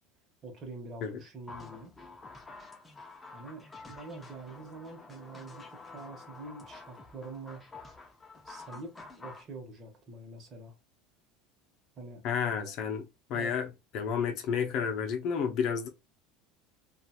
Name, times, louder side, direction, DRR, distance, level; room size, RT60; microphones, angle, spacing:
voice 1, 0.4-1.9 3.3-7.7 8.4-10.8 12.0-12.2 13.3-13.5, right 3 dB, 35° right, 1.0 m, -45 dB
sound 1, 1.5-9.5, left 3 dB, 15° left, 0.6 m, -49 dB
voice 2, 12.2-15.9, left 7 dB, 50° left, 0.7 m, -31 dB
2.8 x 2.4 x 2.3 m
supercardioid pair, 140°, 0 cm